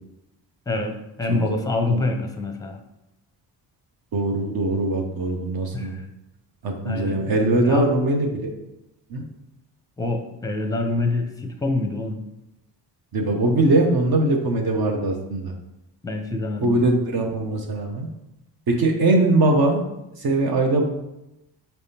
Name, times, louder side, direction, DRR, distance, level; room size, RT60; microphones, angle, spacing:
voice 1, 0.7-2.8 5.7-6.0 6.8-7.2 7.6-7.8 10.0-12.2 16.0-16.8, left 2 dB, 10° left, 5 dB, 0.6 m, -26 dB
voice 2, 4.1-6.0 6.6-8.5 9.1-9.2 13.1-15.5 16.6-18.1 18.7-19.9 20.2-20.9, right 2 dB, 55° right, 2 dB, 0.8 m, -21 dB
4.3 x 3.4 x 2.8 m, 0.91 s
cardioid pair, 60°, 44 cm